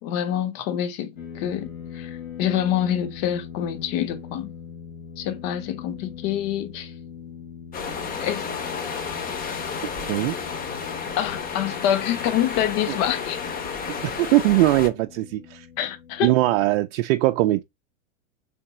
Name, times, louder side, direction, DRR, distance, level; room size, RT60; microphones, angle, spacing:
voice 1, 0.0-4.5 5.2-6.9 8.2-8.5 11.2-13.6 15.8-16.3, left 10 dB, 50° left, 0.9 m, -26 dB
sound 1, 1.2-16.8, left 7 dB, 85° left, 1.5 m, -42 dB
sound 2, 7.7-14.9, left 5 dB, 20° left, 0.8 m, -31 dB
voice 2, 10.1-10.4 12.9-13.0 14.0-15.7 16.2-17.6, right 17 dB, 50° right, 0.5 m, -21 dB
3.6 x 3.5 x 4.2 m
hypercardioid pair, 110°, 40 cm